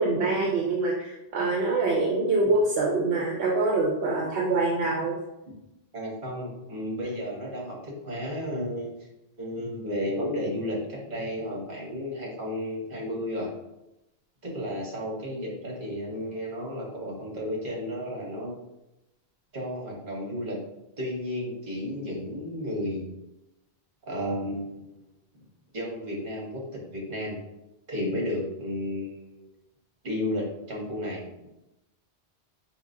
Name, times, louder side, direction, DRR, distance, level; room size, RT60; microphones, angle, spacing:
voice 1, 0.0-5.2, right 3 dB, 75° right, -2 dB, 0.9 m, -25 dB
voice 2, 5.9-8.9 9.4-13.5 14.4-18.5 19.5-20.6 21.0-23.0 24.1-25.0 25.7-26.6 26.9-27.4 27.9-29.5 30.0-31.2, left 1 dB, 50° right, -3 dB, 1.4 m, -33 dB
4.8 x 3.0 x 2.6 m, 0.92 s
omnidirectional pair, 1.1 m